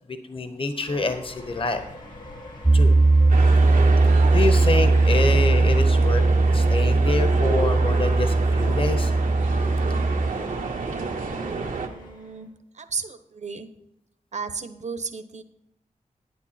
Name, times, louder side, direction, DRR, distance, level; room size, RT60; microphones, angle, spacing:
voice 1, 0.1-1.8 2.7-2.9 4.3-6.3 6.5-9.1 12.3-12.5, left 3 dB, 40° left, 8 dB, 1.1 m, -27 dB
sound 1, 0.9-12.5, left 1 dB, 85° left, 2.6 m, -43 dB
Piano, 2.6-10.3, right 2 dB, 10° right, 0.5 m, -19 dB
sound 2, 3.3-11.9, right 4 dB, 90° right, 1.2 m, -29 dB
voice 2, 11.8-12.5 12.8-13.7 14.3-15.4, right 5 dB, 60° right, 10 dB, 0.9 m, -34 dB
10.5 x 9.4 x 4.3 m, 0.83 s
wide cardioid pair, 70°, 13 cm